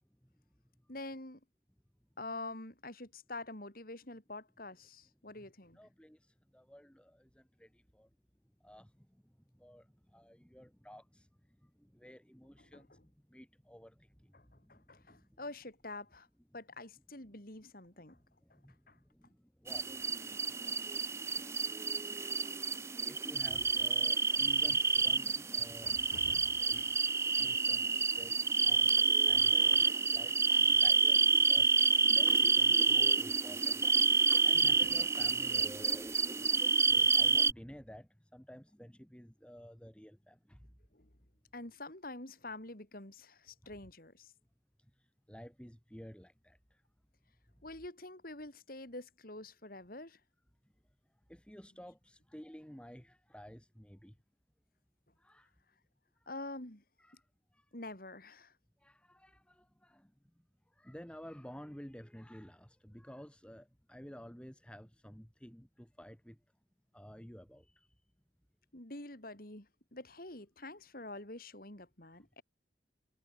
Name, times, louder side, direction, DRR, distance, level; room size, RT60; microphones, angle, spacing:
voice 1, 0.9-1.4 2.2-5.8 12.6-13.0 14.3-16.3 16.5-18.2 18.5-18.6 18.9-19.0 21.9-22.2 25.8-26.9 40.9-41.1 41.5-44.3 47.6-50.2 56.3-56.8 57.7-58.5 68.7-72.4, left 2 dB, 50° left, 4.2 m, -47 dB
voice 2, 5.8-8.1 8.6-11.3 11.6-15.3 18.0-20.4 21.3-21.5 23.0-26.9 27.3-31.7 32.1-33.8 34.4-36.4 36.9-40.7 43.6-43.7 45.3-46.8 51.3-54.2 55.2-55.5 57.0-57.2 57.5-57.7 58.8-60.1 60.8-66.4 66.9-67.9, equal, 5° left, 1.9 m, -53 dB
sound 1, 19.7-37.5, right 4 dB, 15° right, 0.5 m, -29 dB
head